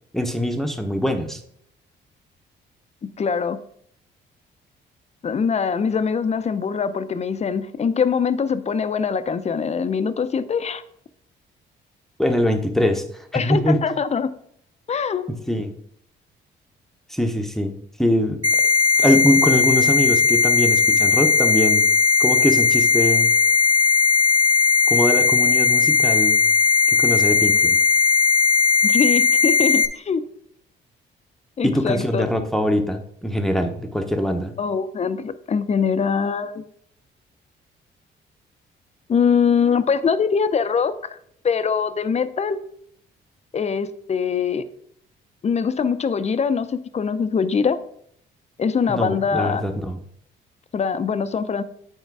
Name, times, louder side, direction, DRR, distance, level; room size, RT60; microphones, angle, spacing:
voice 1, 0.1-1.4 12.2-13.0 13.3-13.8 15.5-15.7 17.1-17.7 18.0-18.4 19.0-21.8 22.2-23.3 24.9-26.4 26.9-27.8 31.6-34.5 48.9-50.0, equal, ahead, 5 dB, 0.9 m, -22 dB
voice 2, 3.2-3.6 5.2-10.8 13.3-14.3 14.9-15.3 28.8-30.2 31.6-32.2 34.6-36.6 39.1-41.2 41.4-42.6 43.5-44.6 45.4-47.8 48.6-49.6 50.7-51.6, left 6 dB, 35° left, 12 dB, 0.6 m, -23 dB
sound 1, 18.4-29.9, left 5 dB, 20° right, 2.0 m, -17 dB
8.2 x 4.4 x 4.7 m, 0.68 s
cardioid pair, 90°, 20 cm